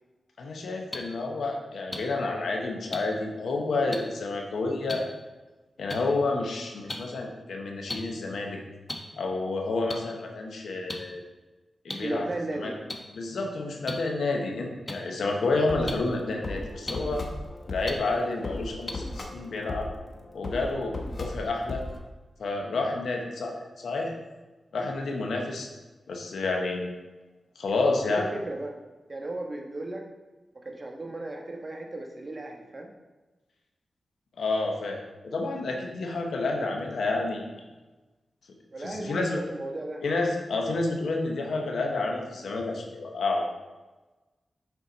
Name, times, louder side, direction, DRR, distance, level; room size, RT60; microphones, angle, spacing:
voice 1, 0.4-5.0 5.8-8.6 9.1-11.2 11.8-12.3 12.5-12.7 13.2-17.2 17.7-19.9 20.3-21.8 22.4-24.1 24.7-25.7 26.1-26.9 27.6-28.3 34.4-35.0 35.2-37.4 38.8-39.4 40.0-43.5, left 3 dB, 85° left, 1 dB, 1.0 m, -29 dB
sound 1, 0.9-1.0 1.9-2.0 2.9-3.0 3.9-4.0 4.9-5.0 5.9-6.0 6.9-7.0 7.9-8.0 8.9-9.0 9.9-10.0 10.9-11.0 11.9-12.0 12.9-13.0 13.9-14.0 14.9-15.0 15.9-16.0 16.9-17.0 17.9-18.0 18.9-19.0, left 1 dB, 30° left, 1.0 m, -33 dB
voice 2, 11.9-12.8 28.0-28.7 29.1-30.0 30.6-32.9 38.7-40.0, right 2 dB, 45° right, 1 dB, 1.3 m, -35 dB
sound 2, 15.3-22.0, left 2 dB, 55° left, 0.9 m, -37 dB
7.0 x 4.5 x 4.0 m, 1.2 s
cardioid pair, 45°, 0 cm